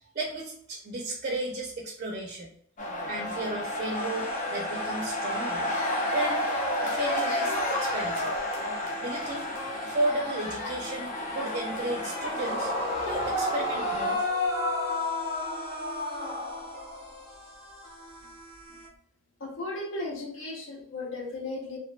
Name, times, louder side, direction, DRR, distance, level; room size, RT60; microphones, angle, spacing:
voice 1, 0.1-2.5 3.1-5.7 6.1-6.5 6.8-8.3 9.0-9.5 9.8-12.7 13.1-14.3, right 2 dB, 40° right, 0 dB, 0.4 m, -33 dB
sound 1, 2.8-14.2, left 1 dB, 40° left, 0.5 m, -31 dB
sound 2, 3.9-18.9, equal, 5° left, 0.9 m, -44 dB
Yell / Screaming, 12.2-17.1, left 1 dB, 55° left, 0.8 m, -30 dB
voice 2, 19.4-21.8, left 2 dB, 90° left, 1 dB, 0.7 m, -36 dB
2.5 x 2.2 x 2.3 m, 0.65 s
head